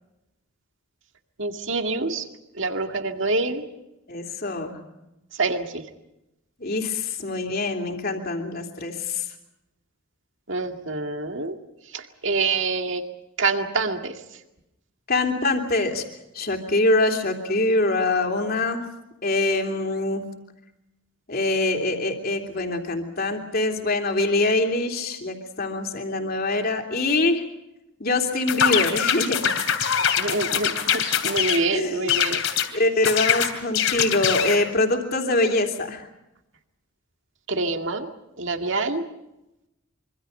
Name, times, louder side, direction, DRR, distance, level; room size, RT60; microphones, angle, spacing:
voice 1, 1.4-2.3 2.6-3.6 5.4-5.8 10.5-11.6 11.9-13.0 13.4-14.1 30.2-32.4 37.5-38.1 38.4-39.0, right 3 dB, 60° right, 5 dB, 2.1 m, -26 dB
voice 2, 4.1-4.8 6.6-9.2 15.1-16.0 16.3-18.8 19.2-20.2 21.3-27.4 28.0-29.4 31.7-32.2 32.7-36.0, left 2 dB, 45° left, 3 dB, 3.2 m, -24 dB
sound 1, 28.5-31.6 32.1-32.7 33.0-34.6, left 8 dB, 70° left, 3.1 m, -23 dB
25.5 x 25.0 x 5.6 m, 0.91 s
head